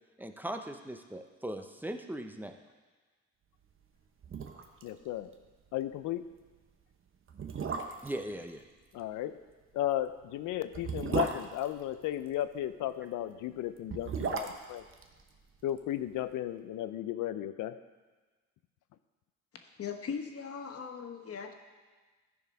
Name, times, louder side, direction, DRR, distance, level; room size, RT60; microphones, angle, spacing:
voice 1, 0.2-2.5 8.0-8.6, right 1 dB, 5° right, 6 dB, 0.8 m, -39 dB
sound 1, 3.9-4.0 4.2-4.9 5.2-5.3 5.7-5.9 6.6-6.7 7.3-8.2 9.7-12.4 13.7-15.9 16.2-16.3, right 5 dB, 45° right, 1.0 m, -36 dB
voice 2, 4.8-5.3 5.7-6.2 8.9-9.4 9.7-14.8 15.6-17.8, left 12 dB, 85° left, 12 dB, 0.6 m, -34 dB
voice 3, 19.8-21.5, left 6 dB, 50° left, 5 dB, 1.2 m, -39 dB
13.0 x 4.8 x 5.4 m, 1.3 s
cardioid pair, 90°, 30 cm